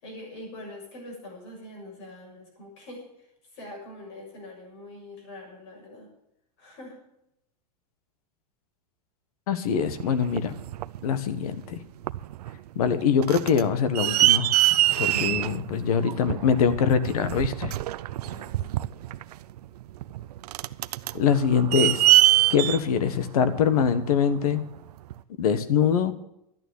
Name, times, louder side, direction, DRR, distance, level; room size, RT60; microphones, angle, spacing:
voice 1, 0.0-3.1 3.5-6.1 6.6-7.0 15.1-15.4 18.2-18.8, left 1 dB, 45° left, 1 dB, 6.8 m, -43 dB
voice 2, 9.5-10.5 11.0-11.8 12.7-14.5 15.0-17.7 21.1-22.1 22.5-24.6 25.4-26.1, left 7 dB, 70° left, 12 dB, 1.5 m, -23 dB
sound 1, 9.8-11.0 11.6-11.8 12.0-12.6 12.9-24.3 25.1-25.2, right 15 dB, 85° right, 0.6 m, -24 dB
12.5 x 9.1 x 8.4 m, 0.81 s
supercardioid pair, 175°, 20 cm